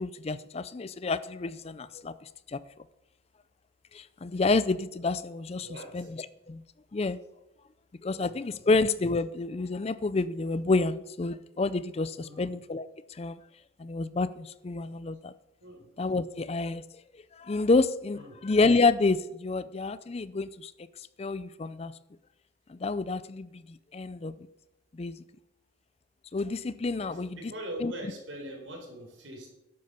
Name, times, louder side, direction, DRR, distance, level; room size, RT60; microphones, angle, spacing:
voice 1, 0.0-2.6 3.9-5.7 5.9-6.1 6.5-6.6 6.9-7.2 8.0-13.4 13.8-15.3 16.0-16.8 17.3-20.7 21.0-21.9 22.7-24.3 24.9-25.2 26.3-27.3 27.8-27.9, left 3 dB, 30° left, 16 dB, 0.4 m, -29 dB
voice 2, 5.6-6.1 8.1-8.7 12.2-12.5 15.6-15.9 18.1-18.4 27.0-29.5, right 1 dB, 75° right, 2 dB, 4.1 m, -42 dB
12.0 x 9.6 x 6.7 m, 0.93 s
head